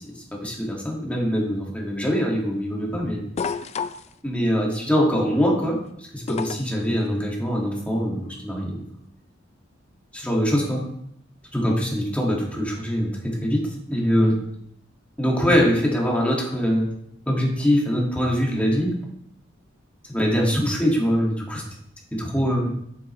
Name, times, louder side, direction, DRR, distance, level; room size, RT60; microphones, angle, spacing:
voice 1, 0.0-3.2 4.2-8.8 10.1-10.8 11.5-13.6 13.9-14.4 15.2-16.9 17.3-18.9 20.1-21.6 22.1-22.7, equal, 5° left, -2 dB, 1.7 m, -23 dB
sound 1, 3.4-4.1 6.3-6.8 8.4-8.5, left 5 dB, 35° left, 0.3 m, -29 dB
7.6 x 7.4 x 3.0 m, 0.72 s
head